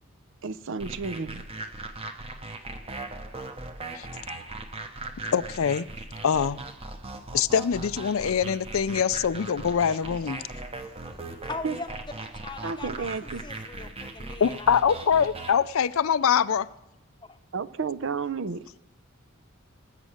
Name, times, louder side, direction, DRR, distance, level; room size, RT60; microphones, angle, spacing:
voice 1, 0.4-1.4 11.6-11.7 12.6-13.4 17.5-18.7, right 5 dB, 65° right, 0.6 m, -31 dB
sound 1, 0.8-15.5, right 2 dB, 30° right, 1.0 m, -39 dB
voice 2, 5.3-5.9 6.2-6.6 7.3-10.4 14.4-16.7, left 7 dB, 75° left, 0.5 m, -24 dB
voice 3, 11.1-14.8 17.2-17.4, left 3 dB, 20° left, 0.8 m, -41 dB
19.0 x 7.5 x 6.5 m
head